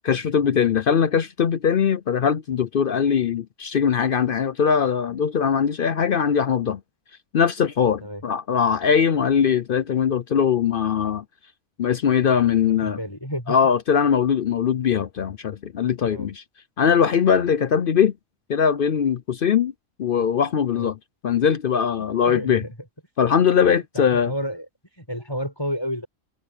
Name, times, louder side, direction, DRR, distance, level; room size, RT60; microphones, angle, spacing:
voice 1, 0.0-6.8 7.3-11.2 11.8-13.0 13.5-16.4 16.8-18.1 18.5-19.7 20.0-21.0 21.2-22.6 23.2-24.3, left 7 dB, 55° left, 0.7 m, -21 dB
voice 2, 12.7-13.6 16.1-16.3 20.7-20.9 22.2-22.7 23.9-24.7 25.0-26.1, equal, 20° left, 6.1 m, -30 dB
omnidirectional pair, 1.4 m